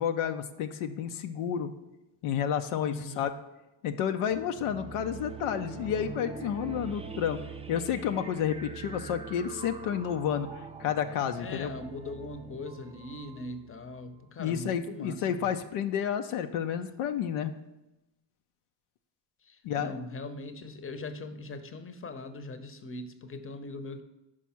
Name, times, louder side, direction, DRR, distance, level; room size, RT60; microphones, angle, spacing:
voice 1, 0.0-1.7 2.2-3.3 3.8-7.4 7.7-11.7 14.4-17.5 19.6-19.9, left 8 dB, 80° left, 7 dB, 0.6 m, -30 dB
voice 2, 2.8-3.3 11.4-15.5 19.4-24.0, left 2 dB, 25° left, 10 dB, 0.8 m, -41 dB
sound 1, 4.3-14.5, right 5 dB, 10° right, 0.5 m, -43 dB
5.1 x 4.8 x 5.7 m, 0.93 s
supercardioid pair, 55°, 48 cm